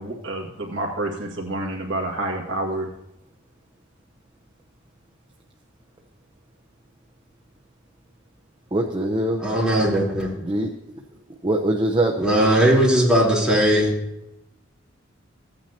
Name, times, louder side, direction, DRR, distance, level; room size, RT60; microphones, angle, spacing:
voice 1, 0.0-2.9, right 1 dB, 65° right, -1 dB, 1.8 m, -28 dB
voice 2, 8.7-9.4 10.4-10.7 11.4-12.3, right 1 dB, 25° right, 1 dB, 0.7 m, -22 dB
voice 3, 9.4-10.3 12.2-13.9, right 1 dB, 5° right, -7 dB, 3.7 m, -18 dB
15.0 x 8.9 x 2.9 m, 0.87 s
head